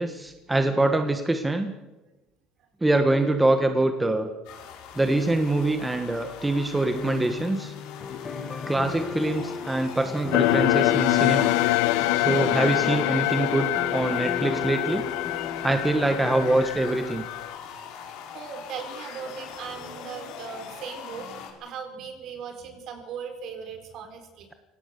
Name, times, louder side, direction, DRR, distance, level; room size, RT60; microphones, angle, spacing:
voice 1, 0.0-1.7 2.8-4.3 5.0-7.7 8.7-11.6 12.2-15.0 15.6-17.3, right 2 dB, 10° right, 6 dB, 1.4 m, -24 dB
sound 1, 4.4-21.5, left 8 dB, 75° left, 5.0 m, -42 dB
sound 2, 6.9-16.6, left 5 dB, 25° left, 1.7 m, -35 dB
voice 2, 8.1-8.7 18.2-24.5, right 6 dB, 55° right, 6 dB, 4.5 m, -39 dB
sound 3, 10.3-17.5, left 16 dB, 90° left, 1.1 m, -25 dB
23.0 x 18.0 x 6.8 m, 1.1 s
cardioid pair, 145°, 0 cm